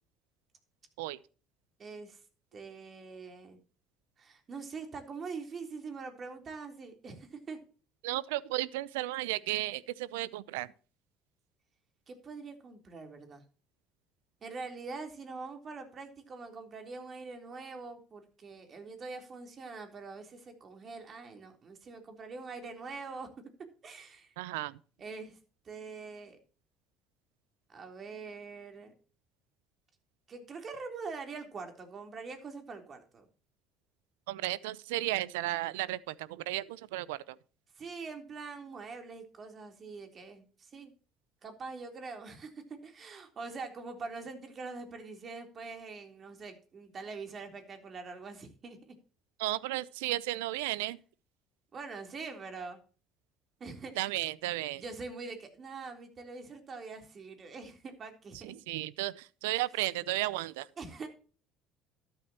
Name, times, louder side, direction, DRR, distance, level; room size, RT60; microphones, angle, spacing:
voice 1, 1.8-2.2 2.5-3.6 4.2-7.6 12.1-13.4 14.4-23.3 23.8-24.3 25.0-25.4 25.6-26.4 27.7-28.9 30.3-33.3 37.8-40.9 41.4-48.9 51.7-52.8 53.6-54.1 54.7-58.5 60.8-61.1, right 4 dB, 40° right, 3.6 m, -44 dB
voice 2, 8.0-10.7 24.4-24.8 34.3-37.4 49.4-51.0 54.0-54.8 58.4-60.7, right 17 dB, 80° right, 0.6 m, -34 dB
13.0 x 11.5 x 3.0 m
hypercardioid pair, 65°, 0 cm